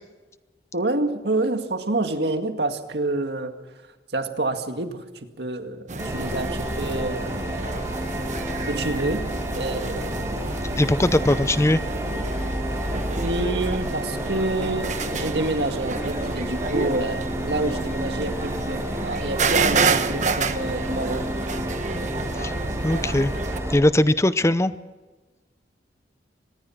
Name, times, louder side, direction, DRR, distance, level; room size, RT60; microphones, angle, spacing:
voice 1, 0.7-3.5 4.1-5.0 5.4-7.5 8.7-9.3 9.5-10.5 13.2-21.2, right 2 dB, 65° right, 2.1 m, -28 dB
sound 1, 5.9-23.6, right 4 dB, 45° right, 1.2 m, -30 dB
sound 2, 6.0-23.8, right 1 dB, 15° right, 4.6 m, -30 dB
voice 2, 10.8-11.8 22.4-22.5 22.8-23.3 23.7-24.7, left 1 dB, 15° left, 0.6 m, -20 dB
25.0 x 20.0 x 6.0 m
head